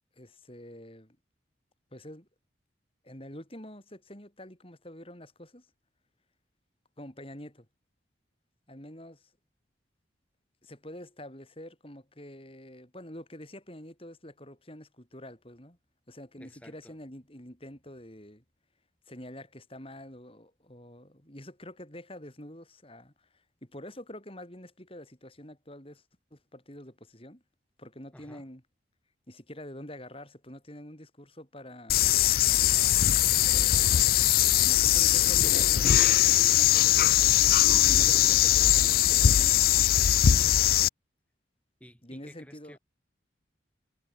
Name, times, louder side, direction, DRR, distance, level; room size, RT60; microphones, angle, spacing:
voice 1, 0.2-1.2 1.9-2.3 3.0-5.7 7.0-7.7 8.7-9.3 10.6-15.8 16.1-18.4 19.1-26.0 26.3-27.4 27.8-28.6 29.3-32.0 33.4-34.1 34.6-39.9 42.0-42.8, left 1 dB, 30° left, 5.8 m, -46 dB
voice 2, 16.4-16.9 28.1-28.4 41.8-42.8, equal, 5° left, 4.1 m, -52 dB
sound 1, 31.9-40.9, left 12 dB, 50° left, 0.4 m, -21 dB
head